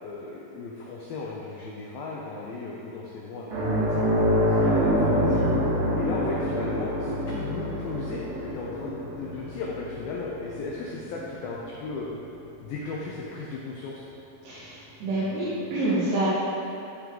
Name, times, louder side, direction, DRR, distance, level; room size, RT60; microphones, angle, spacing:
voice 1, 0.0-5.4 5.9-12.1 12.6-14.0, left 3 dB, 80° left, -4 dB, 2.2 m, -36 dB
sound 1, 3.5-12.4 12.8-13.0 15.0-15.1, equal, 50° right, 3.1 m, -26 dB
voice 2, 14.4-16.3, right 2 dB, 75° right, -11 dB, 3.8 m, -27 dB
13.5 x 5.2 x 3.7 m, 2.9 s
omnidirectional pair, 5.2 m